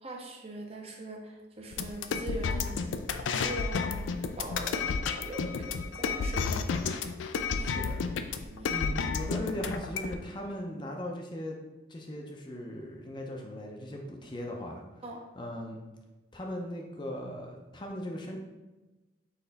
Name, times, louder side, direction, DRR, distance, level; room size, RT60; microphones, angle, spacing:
voice 1, 0.0-3.0 3.3-6.8 7.6-7.9 8.4-8.7 15.0-15.2, right 1 dB, 30° right, 1 dB, 0.5 m, -42 dB
sound 1, 1.7-10.1, left 5 dB, 75° left, 0.3 m, -31 dB
voice 2, 7.5-8.3 8.7-11.6 11.9-15.0 15.4-15.8 16.3-18.4, left 1 dB, 25° left, 0 dB, 0.5 m, -38 dB
4.1 x 3.2 x 4.0 m, 1.1 s
head